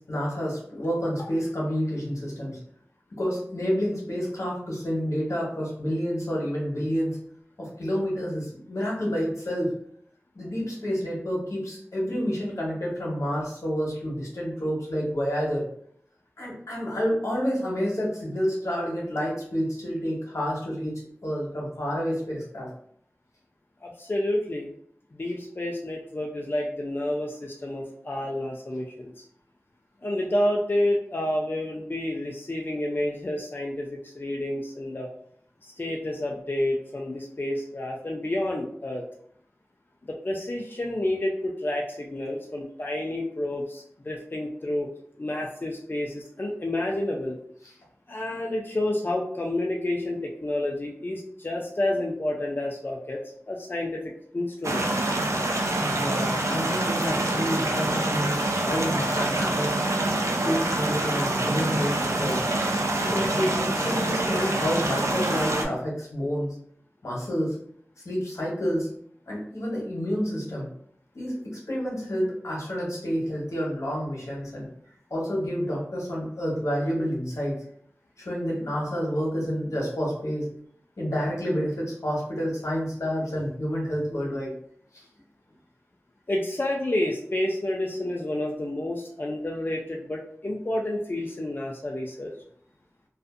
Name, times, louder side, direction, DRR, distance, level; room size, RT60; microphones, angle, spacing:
voice 1, 0.0-2.6 3.2-7.2 7.6-9.7 10.3-15.6 16.4-22.7 55.8-59.8 60.4-62.4 63.0-66.5 67.0-67.6 68.0-68.9 69.3-70.7 71.1-74.7 75.1-77.6 78.2-80.5 81.0-84.5 84.9-85.0, equal, 90° left, -4 dB, 0.9 m, -29 dB
voice 2, 23.8-24.7 25.1-29.2 30.0-35.1 35.6-39.0 40.1-44.9 45.2-47.4 48.1-53.2 53.5-55.0 86.3-92.3, left 1 dB, 45° left, -1 dB, 0.4 m, -29 dB
sound 1, 54.6-65.7, right 2 dB, 85° right, 0.4 m, -26 dB
2.5 x 2.4 x 2.5 m, 0.65 s
wide cardioid pair, 50°, 5 cm